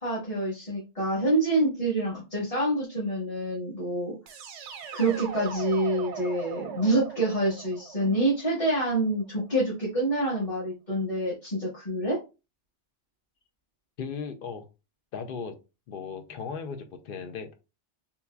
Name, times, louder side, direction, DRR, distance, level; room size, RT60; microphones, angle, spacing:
voice 1, 0.0-4.1 4.9-12.2, right 1 dB, 30° left, -7 dB, 1.2 m, -27 dB
sound 1, 4.3-9.2, right 6 dB, 90° right, 0.9 m, -40 dB
voice 2, 14.0-14.7 15.1-15.6 15.9-17.5, left 6 dB, 60° left, 7 dB, 0.7 m, -36 dB
3.7 x 2.8 x 2.2 m, 0.29 s
omnidirectional pair, 1.2 m